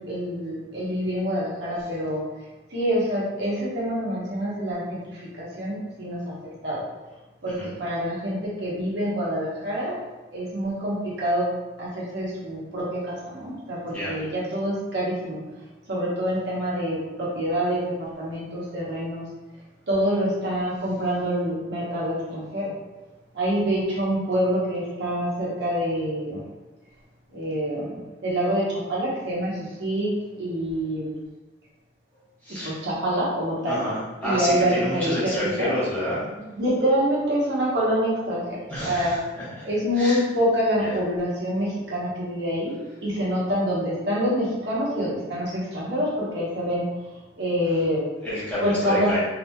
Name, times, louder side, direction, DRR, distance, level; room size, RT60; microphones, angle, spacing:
voice 1, 0.1-2.2 2.7-6.4 6.6-6.8 7.4-10.0 10.3-11.5 11.8-15.4 15.9-19.3 19.9-22.7 23.3-26.4 27.3-31.2 32.6-33.8 34.2-35.7 36.5-39.2 39.6-42.7 43.0-46.8 47.4-48.0 48.6-49.2, equal, 70° right, -7 dB, 0.9 m, -26 dB
voice 2, 33.7-36.2 38.7-39.1 39.6-39.7 40.0-40.2 40.8-40.9 48.2-49.2, equal, 10° left, -11 dB, 1.0 m, -29 dB
2.8 x 2.6 x 2.2 m, 1.1 s
head